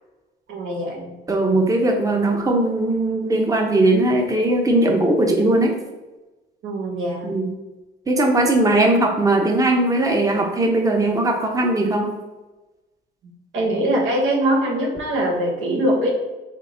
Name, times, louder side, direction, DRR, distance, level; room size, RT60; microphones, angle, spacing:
voice 1, 0.5-1.2 6.6-7.4 8.8-8.9 13.5-16.1, right 1 dB, 80° right, -1 dB, 1.1 m, -22 dB
voice 2, 1.3-5.7 7.2-7.5 8.1-12.2, right 2 dB, 15° right, 2 dB, 0.7 m, -19 dB
3.7 x 3.4 x 3.8 m, 1.1 s
cardioid pair, 90°, 20 cm